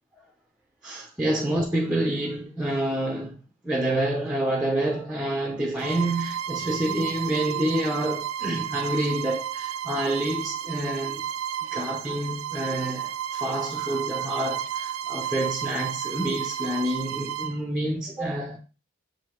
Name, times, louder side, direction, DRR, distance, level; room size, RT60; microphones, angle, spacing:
voice 1, 0.8-11.2 11.7-18.6, right 1 dB, 5° right, 0.8 m, -28 dB
Bowed string instrument, 5.8-17.6, right 10 dB, 80° right, 0.4 m, -32 dB
8.2 x 2.8 x 4.6 m
head